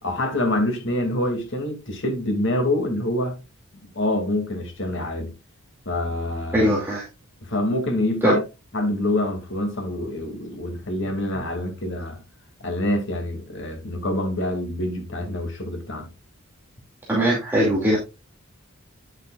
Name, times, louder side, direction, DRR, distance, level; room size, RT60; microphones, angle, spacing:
voice 1, 0.0-3.4 3.9-5.3 5.9-6.7 7.4-8.4 8.7-12.2 12.6-16.1, left 1 dB, 55° left, 2.5 m, -26 dB
voice 2, 6.5-7.1 8.2-8.4 17.1-18.0, equal, 10° right, 2.4 m, -20 dB
9.4 x 8.2 x 2.4 m
head